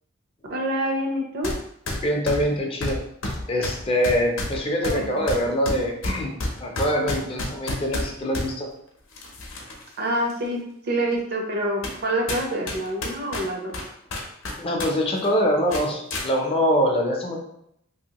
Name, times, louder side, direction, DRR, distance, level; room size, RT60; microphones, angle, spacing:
voice 1, 0.5-1.5 4.8-5.3 10.0-13.8, right 1 dB, 50° right, 1 dB, 0.6 m, -27 dB
sound 1, 1.4-1.6 1.9-8.5 9.1-9.9 10.3-10.4 11.1-11.2 11.8-12.0 12.3-14.9 15.2-15.3 15.7-16.3, left 2 dB, 70° left, 0.6 m, -30 dB
voice 2, 2.0-3.0 3.5-8.7 14.6-17.4, equal, 25° left, 0 dB, 0.5 m, -24 dB
2.8 x 2.7 x 2.9 m, 0.73 s
head